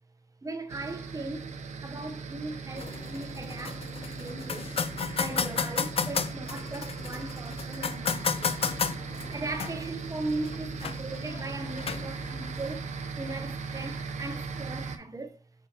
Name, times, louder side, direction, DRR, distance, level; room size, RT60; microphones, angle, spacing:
voice 1, 0.4-1.6 1.8-4.7 5.2-8.6 9.3-12.9 13.1-15.4, right 2 dB, 25° right, 0.7 m, -38 dB
sound 1, 0.7-15.0, right 5 dB, 65° right, 0.6 m, -38 dB
sound 2, 2.8-12.8, left 6 dB, 45° left, 0.4 m, -34 dB
6.5 x 5.4 x 2.8 m
wide cardioid pair, 110°, 13 cm